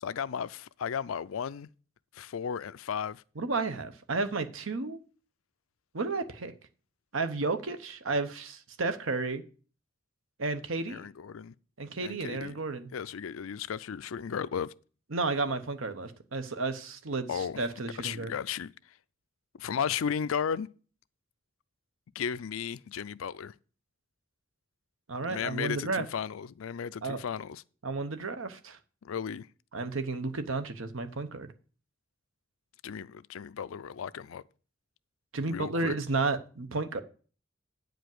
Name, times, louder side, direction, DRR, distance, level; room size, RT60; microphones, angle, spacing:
voice 1, 0.0-1.7 2.1-3.2 10.9-11.5 12.0-12.5 12.9-14.7 17.3-17.6 18.0-18.9 19.6-20.7 22.1-23.5 25.3-27.6 29.0-29.5 32.8-34.4 35.5-36.0, left 7 dB, 85° left, 0.4 m, -35 dB
voice 2, 3.4-5.0 5.9-6.5 7.1-9.4 10.4-11.0 11.8-12.9 15.1-18.3 25.1-26.0 27.0-27.2 27.8-28.8 29.7-31.5 35.3-37.0, right 3 dB, 80° right, 0.9 m, -32 dB
9.2 x 5.1 x 7.7 m
head